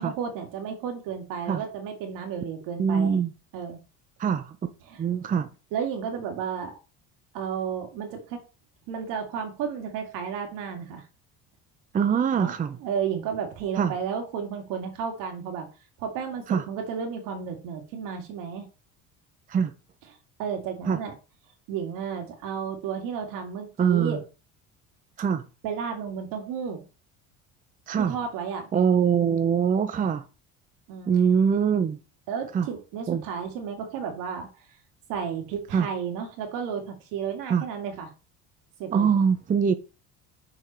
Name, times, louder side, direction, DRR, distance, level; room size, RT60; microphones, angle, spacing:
voice 1, 0.0-3.2 3.5-3.8 4.8-5.0 5.7-6.8 7.3-8.4 8.9-11.0 12.4-12.5 12.8-15.7 16.0-18.7 20.4-21.1 21.7-24.2 25.6-26.8 28.0-28.7 30.9-31.2 32.3-34.5 35.1-38.1 38.8-39.1, right 7 dB, 75° right, 2.3 m, -32 dB
voice 2, 2.8-3.3 4.2-4.6 5.0-5.5 11.9-12.8 13.8-13.9 16.5-16.6 19.5-19.7 20.9-21.0 23.8-24.2 25.2-25.4 27.9-28.2 28.7-30.2 31.1-32.0 32.5-32.7 33.1-33.2 35.7-35.9 37.5-37.6 38.9-39.7, right 7 dB, 25° right, 0.6 m, -23 dB
6.1 x 5.0 x 4.4 m
cardioid pair, 125°, 33 cm